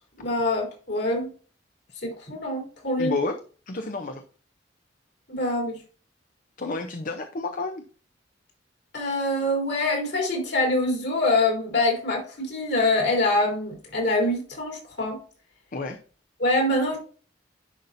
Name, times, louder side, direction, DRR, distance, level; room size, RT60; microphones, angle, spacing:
voice 1, 0.2-1.3 2.0-3.2 5.3-5.8 8.9-15.2 16.4-17.0, left 2 dB, 65° left, 0 dB, 3.5 m, -25 dB
voice 2, 3.0-3.4 3.7-4.2 6.6-7.8 15.7-16.0, left 3 dB, 50° left, 5 dB, 0.7 m, -30 dB
11.0 x 5.5 x 2.6 m, 0.40 s
head